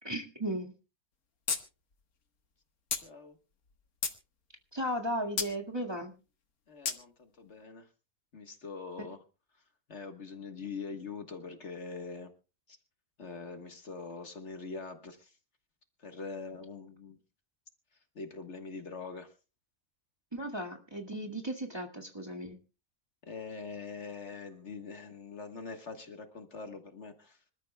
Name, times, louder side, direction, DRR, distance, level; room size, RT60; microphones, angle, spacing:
voice 1, 0.0-0.7 4.7-6.1 20.3-22.6, equal, 20° right, 0 dB, 1.9 m, -35 dB
sound 1, 1.5-1.6 1.9-2.0 2.9-3.0 3.7-4.2 5.4-5.5 6.9-7.0, left 6 dB, 85° left, 1.9 m, -32 dB
voice 2, 2.9-3.4 6.7-7.9 8.3-9.2 9.9-12.3 12.7-12.8 13.2-15.3 16.0-17.2 18.1-19.3 23.2-27.4, left 4 dB, 50° left, 6 dB, 1.7 m, -43 dB
26.0 x 13.5 x 2.3 m, 0.32 s
omnidirectional pair, 1.5 m